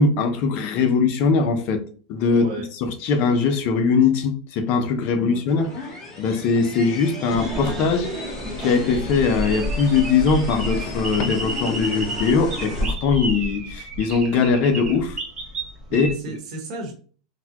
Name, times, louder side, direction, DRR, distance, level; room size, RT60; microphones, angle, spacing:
voice 1, 0.0-1.8 2.1-2.5 2.7-5.7 6.2-8.1 8.6-15.2 15.9-16.1, left 5 dB, 50° left, 0.7 m, -21 dB
voice 2, 2.3-2.7 5.1-5.4 15.9-16.9, right 2 dB, 60° right, 1.2 m, -33 dB
sound 1, 5.5-12.9, left 3 dB, 25° left, 1.4 m, -35 dB
sound 2, 7.3-16.1, right 1 dB, 20° right, 0.9 m, -30 dB
4.0 x 2.3 x 2.9 m
supercardioid pair, 135°, 3 cm